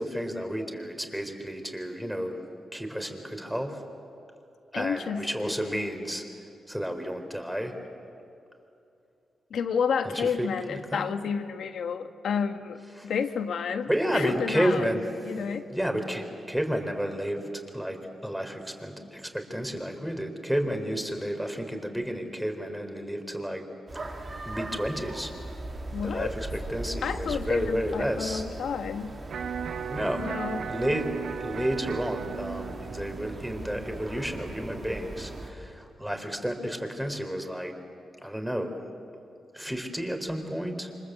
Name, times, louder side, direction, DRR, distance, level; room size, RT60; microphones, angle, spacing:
voice 1, 0.0-2.4 2.7-3.8 4.7-6.2 6.7-7.7 10.1-11.1 13.0-13.1 13.9-15.4 15.7-17.5 17.7-23.6 23.9-24.1 24.4-25.3 26.0-28.4 29.9-30.3 30.7-31.1 31.4-37.7 38.2-38.8 39.5-40.9, equal, 5° right, 5 dB, 4.2 m, -31 dB
voice 2, 4.7-5.9 9.5-14.8 15.2-15.7 25.8-26.3 27.0-29.2 30.2-30.7, left 6 dB, 80° left, 7 dB, 1.5 m, -31 dB
sound 1, 23.9-35.5, right 2 dB, 40° right, 4.1 m, -39 dB
Electric guitar, 29.3-35.4, right 7 dB, 75° right, 1.0 m, -37 dB
28.5 x 25.5 x 8.1 m, 2.7 s
cardioid pair, 80°, 0 cm